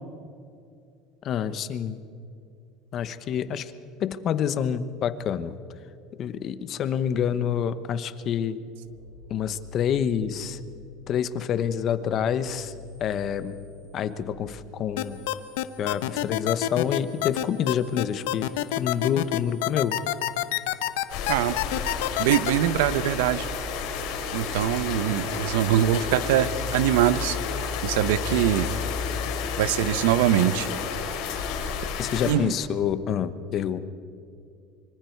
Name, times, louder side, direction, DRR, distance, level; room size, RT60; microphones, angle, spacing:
voice 1, 1.2-2.0 2.9-3.7 4.0-5.5 6.2-8.6 9.3-10.6 11.1-12.7 13.0-13.6 13.9-15.2 15.8-20.0 32.0-33.8, left 8 dB, 40° left, 13 dB, 1.0 m, -27 dB
sound 1, 8.8-14.2, left 4 dB, 35° right, 6.3 m, -46 dB
sound 2, 15.0-22.5, left 15 dB, 80° left, 0.9 m, -26 dB
sound 3, 21.1-32.3, left 6 dB, 65° left, 4.7 m, -31 dB
voice 2, 21.3-21.6 22.2-23.5 24.3-27.4 27.8-28.7 29.6-30.7 32.2-32.5, right 12 dB, 85° right, 15 dB, 0.9 m, -23 dB
25.5 x 24.5 x 4.6 m, 2.5 s
cardioid pair, 145°, 0 cm